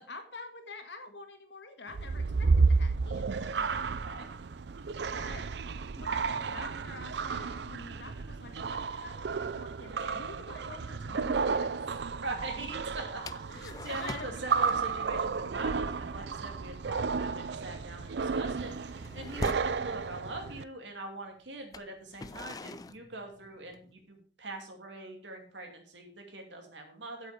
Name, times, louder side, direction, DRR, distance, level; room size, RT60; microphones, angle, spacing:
voice 1, 0.1-3.5 5.1-5.5 5.8-11.8 13.5-14.4, left 3 dB, 80° left, 6 dB, 1.7 m, -47 dB
sound 1, 1.9-20.6, right 4 dB, 70° right, 0.5 m, -32 dB
voice 2, 12.2-27.3, right 2 dB, 85° right, 3 dB, 2.6 m, -42 dB
sound 2, 13.3-14.4 14.7-15.0 15.3-15.5 15.9-16.2 16.5-16.8 17.1-19.8 20.6-20.7 21.6-23.9, left 3 dB, 20° left, 0.3 m, -43 dB
8.2 x 7.9 x 5.0 m, 0.43 s
head